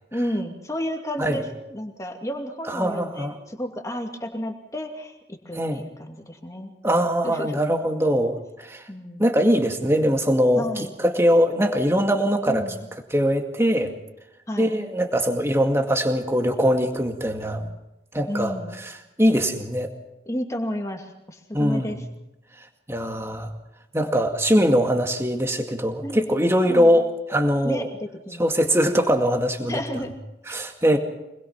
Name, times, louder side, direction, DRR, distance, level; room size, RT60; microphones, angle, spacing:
voice 1, 0.1-6.7 7.2-7.6 8.9-9.4 10.6-10.9 12.5-12.8 14.5-14.8 18.3-18.8 20.3-22.0 26.0-26.2 26.7-27.0 27.6-28.5 29.7-30.1, equal, 15° left, 3 dB, 2.4 m, -31 dB
voice 2, 2.7-3.4 5.5-5.8 6.8-8.8 9.2-12.6 13.1-13.9 14.6-17.7 18.1-19.9 21.5-22.1 22.9-23.5 23.9-27.9 28.4-29.8 30.5-31.0, equal, 15° right, 4 dB, 2.1 m, -22 dB
25.5 x 21.0 x 5.9 m, 0.92 s
head